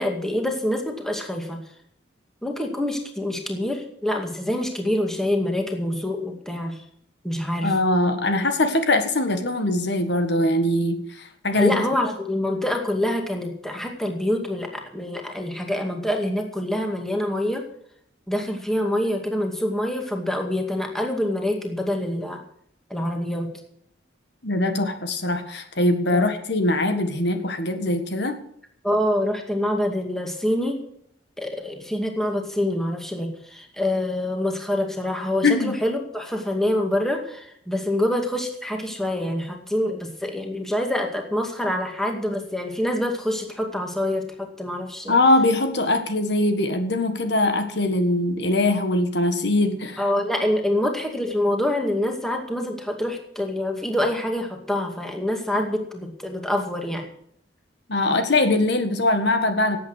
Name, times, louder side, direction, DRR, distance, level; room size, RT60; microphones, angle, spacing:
voice 1, 0.0-1.6 2.4-6.8 7.2-7.7 11.5-17.6 18.3-22.4 22.9-23.5 26.1-26.3 28.8-30.8 31.4-45.2 50.0-57.1, left 1 dB, ahead, 2 dB, 2.2 m, -26 dB
voice 2, 7.6-11.8 24.4-28.4 35.4-35.7 45.1-50.0 57.9-59.8, left 2 dB, 60° left, 7 dB, 1.7 m, -22 dB
17.5 x 8.6 x 6.4 m, 0.69 s
head